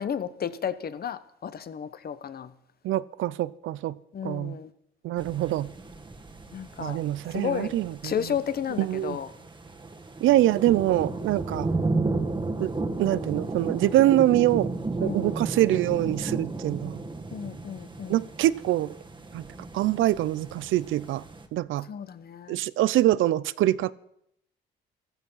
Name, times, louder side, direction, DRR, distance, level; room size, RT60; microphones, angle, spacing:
voice 1, 0.0-2.5 4.1-4.7 6.5-7.0 7.3-9.3 15.0-15.3 17.3-18.2 21.9-22.6, left 8 dB, 50° left, 13 dB, 1.1 m, -33 dB
voice 2, 2.8-4.0 4.2-4.6 5.0-5.7 6.8-8.1 8.8-9.2 10.2-11.7 12.6-12.7 13.0-14.7 15.0-17.0 18.1-18.9 19.3-19.4 19.7-21.2 21.5-21.9 22.5-23.9, right 14 dB, 80° right, 19 dB, 0.6 m, -24 dB
sound 1, 5.2-21.4, right 3 dB, 25° right, 1.7 m, -34 dB
14.5 x 13.5 x 5.6 m, 0.76 s
cardioid pair, 90°, 20 cm